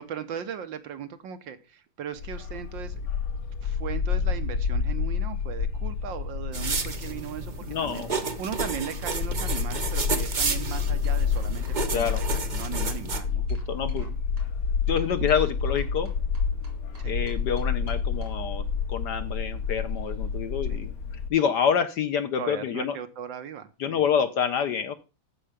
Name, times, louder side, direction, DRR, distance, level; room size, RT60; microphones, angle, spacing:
voice 1, 0.0-3.1 3.6-7.5 7.8-8.0 8.4-13.5 15.2-15.3 17.0-17.2 20.7-20.8 22.4-24.0, right 8 dB, 65° right, 11 dB, 1.5 m, -37 dB
Bark, 2.1-21.3, left 6 dB, 85° left, 2.2 m, -29 dB
sound 1, 6.5-13.2, right 4 dB, 40° right, 0.7 m, -32 dB
voice 2, 7.6-8.3 11.9-12.2 13.5-14.2 14.9-16.1 17.1-20.9 21.3-23.0 23.8-25.0, left 7 dB, 65° left, 11 dB, 1.1 m, -27 dB
sound 2, 8.4-8.6 9.0-9.9 10.1-12.3 12.6-14.1 14.4-14.5 15.0-15.5 15.8-18.3, right 2 dB, 90° right, 3.9 m, -52 dB
14.5 x 5.6 x 5.0 m, 0.31 s
omnidirectional pair, 2.3 m